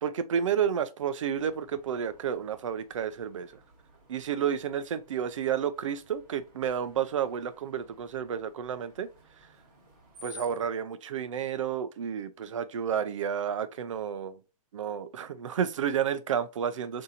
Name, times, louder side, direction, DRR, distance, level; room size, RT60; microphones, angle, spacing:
voice 1, 0.0-3.5 4.1-9.1 10.2-14.4 14.7-17.0, right 8 dB, 55° right, 0.4 m, -31 dB
Screech, 1.4-10.7, left 1 dB, 30° right, 1.2 m, -55 dB
4.1 x 2.7 x 2.5 m
hypercardioid pair, 180°, 20 cm